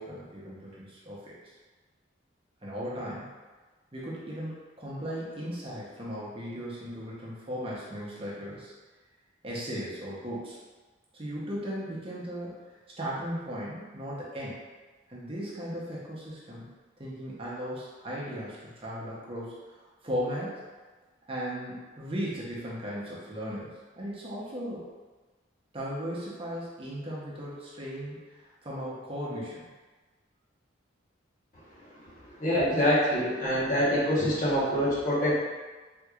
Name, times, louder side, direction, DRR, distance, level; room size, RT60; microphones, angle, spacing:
voice 1, 0.0-1.4 2.6-3.3 3.9-8.7 9.4-10.6 11.1-14.6 15.1-16.7 17.0-20.6 21.3-24.9 25.7-29.6, equal, 30° right, -6 dB, 0.7 m, -37 dB
voice 2, 32.4-35.4, equal, 40° left, -8 dB, 1.1 m, -25 dB
3.5 x 3.1 x 2.3 m, 1.3 s
head